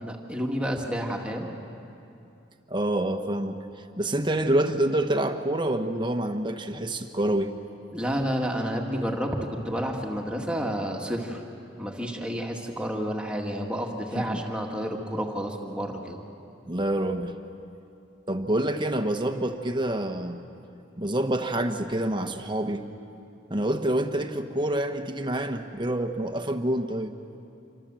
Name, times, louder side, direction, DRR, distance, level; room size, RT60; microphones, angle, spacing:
voice 1, 0.0-1.5 7.9-9.4 9.7-11.4 11.8-16.2, equal, 5° right, 0 dB, 2.0 m, -30 dB
voice 2, 2.7-3.6 4.0-7.5 14.1-14.4 16.7-17.4 18.3-20.4 21.0-22.9 23.5-27.2, right 1 dB, 25° right, 6 dB, 1.1 m, -27 dB
27.5 x 25.0 x 7.6 m, 2.7 s
head